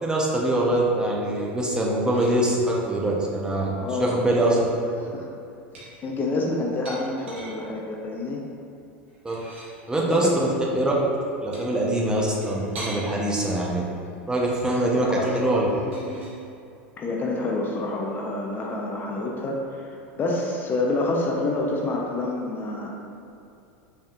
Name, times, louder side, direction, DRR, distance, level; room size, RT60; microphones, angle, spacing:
voice 1, 0.0-4.6 9.2-9.4 9.9-10.5 10.7-10.9 11.4-13.8 14.3-15.1 15.3-15.7, right 1 dB, 10° right, -3 dB, 0.8 m, -23 dB
sound 1, 1.9-2.4 3.9-4.6 5.7-7.6 9.1-9.8 11.5-13.0 15.7-16.4, right 2 dB, 85° right, 1.2 m, -42 dB
voice 2, 3.8-4.6 5.1-5.3 6.0-8.4 10.1-10.3 15.0-16.1 17.0-22.9, left 2 dB, 30° left, -1 dB, 0.6 m, -28 dB
5.3 x 3.5 x 2.4 m, 2.6 s
hypercardioid pair, 90°, 6 cm